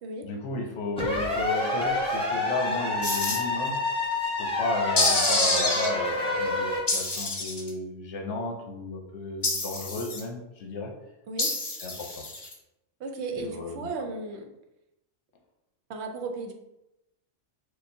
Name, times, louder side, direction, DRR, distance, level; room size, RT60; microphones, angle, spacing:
voice 1, 0.2-3.8 4.4-10.9 11.8-12.2 13.4-13.9, left 3 dB, 75° left, 1 dB, 1.0 m, -34 dB
sound 1, 1.0-6.8, left 2 dB, 5° left, 0.9 m, -28 dB
sound 2, 3.0-3.4 5.0-5.9 6.9-7.7 9.4-10.2 11.4-12.5, left 2 dB, 30° left, 0.5 m, -27 dB
voice 2, 13.0-14.4 15.9-16.5, right 3 dB, 70° right, 3 dB, 0.8 m, -35 dB
6.4 x 2.3 x 2.6 m, 0.90 s
omnidirectional pair, 1.2 m